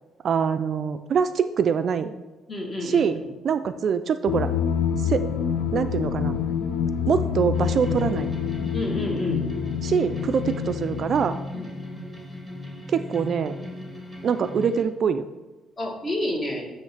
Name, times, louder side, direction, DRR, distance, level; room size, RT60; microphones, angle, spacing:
voice 1, 0.2-2.1 2.8-3.2 3.4-4.5 5.0-5.3 5.7-6.3 7.1-8.3 9.8-11.4 12.9-13.5 14.2-15.3, right 7 dB, 50° right, 10 dB, 0.3 m, -24 dB
voice 2, 2.5-3.2 8.7-9.5 11.5-11.7 11.9-12.0 15.8-16.6, left 1 dB, 25° left, 1 dB, 1.4 m, -29 dB
sound 1, 4.3-11.4, left 8 dB, 75° left, 0.5 m, -27 dB
sound 2, 7.5-14.8, left 2 dB, 5° left, 1.6 m, -36 dB
8.8 x 3.1 x 5.8 m, 1.1 s
cardioid pair, 125°, 0 cm